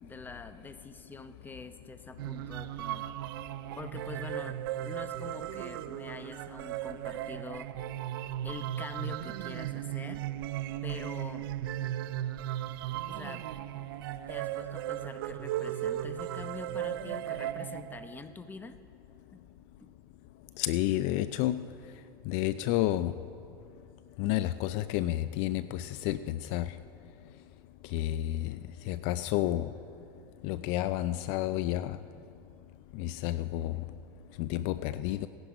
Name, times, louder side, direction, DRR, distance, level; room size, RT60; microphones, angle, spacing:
voice 1, 0.0-3.1 3.7-7.7 8.4-10.3 10.8-11.4 13.1-13.5 14.3-18.8 19.3-19.5 19.8-19.9, left 4 dB, 15° left, 10 dB, 0.8 m, -45 dB
sound 1, 2.2-18.2, right 13 dB, 75° right, 0.5 m, -36 dB
voice 2, 20.6-21.7 22.3-23.2 24.2-26.7 27.9-28.6 28.9-29.7 30.4-32.0 32.9-33.8 34.4-35.3, left 14 dB, 60° left, 14 dB, 0.4 m, -30 dB
17.5 x 10.5 x 5.1 m, 2.5 s
hypercardioid pair, 105°, 12 cm